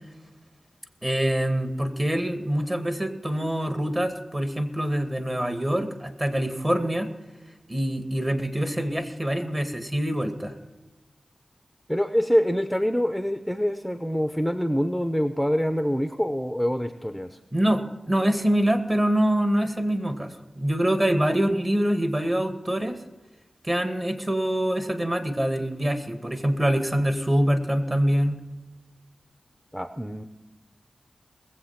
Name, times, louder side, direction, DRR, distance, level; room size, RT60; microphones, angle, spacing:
voice 1, 1.0-7.1 7.7-10.5 17.5-23.0 23.6-28.4, right 1 dB, 25° right, 8 dB, 1.9 m, -25 dB
voice 2, 11.9-17.4 29.7-30.2, equal, ahead, 9 dB, 0.7 m, -25 dB
20.5 x 7.9 x 5.8 m, 1.1 s
cardioid pair, 55°, 0 cm